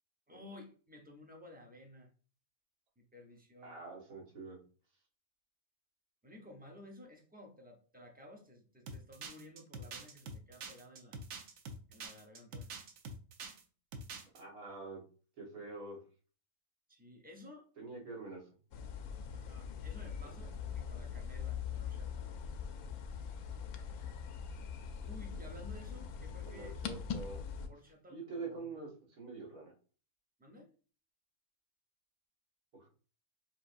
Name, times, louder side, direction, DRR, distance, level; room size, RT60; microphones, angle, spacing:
voice 1, 0.3-2.1 3.0-3.8 6.2-11.2 11.9-12.7 14.1-14.2 16.9-17.7 19.3-22.3 25.0-26.8 27.7-28.7 30.4-30.7, left 1 dB, 10° right, 1 dB, 0.4 m, -54 dB
voice 2, 3.6-4.6 14.3-15.0 15.4-16.0 17.8-18.4 26.5-27.5 28.1-29.7 32.7-32.9, right 3 dB, 90° right, -3 dB, 2.1 m, -45 dB
sound 1, 8.9-13.6 13.9-14.4, right 3 dB, 70° right, 1.1 m, -46 dB
sound 2, 18.7-27.7, left 7 dB, 80° left, 1.1 m, -42 dB
6.9 x 2.6 x 2.5 m, 0.39 s
omnidirectional pair, 1.5 m